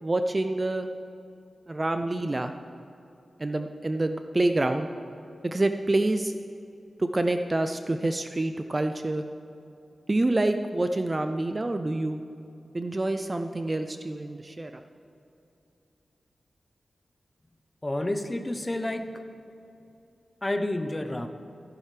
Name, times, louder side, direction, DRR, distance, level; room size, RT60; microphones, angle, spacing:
voice 1, 0.0-0.9 1.7-2.5 3.4-4.9 5.4-6.4 7.0-9.2 10.1-12.2 12.7-14.8, right 2 dB, 25° right, 7 dB, 0.4 m, -27 dB
voice 2, 17.8-19.1 20.4-21.3, left 1 dB, 15° left, 7 dB, 0.6 m, -29 dB
15.0 x 11.0 x 3.3 m, 2.8 s
wide cardioid pair, 145°, 0 cm